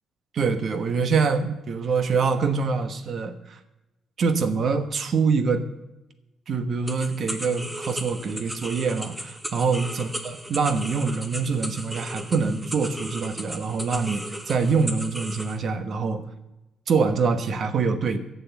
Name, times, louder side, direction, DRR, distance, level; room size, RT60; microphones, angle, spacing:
voice 1, 0.3-3.6 4.2-5.7 6.5-16.2 16.9-18.2, right 5 dB, 55° right, 10 dB, 1.2 m, -25 dB
sound 1, 6.9-15.6, equal, 10° right, 1.2 m, -36 dB
10.0 x 6.9 x 8.2 m, 0.95 s
cardioid pair, 90°, 0 cm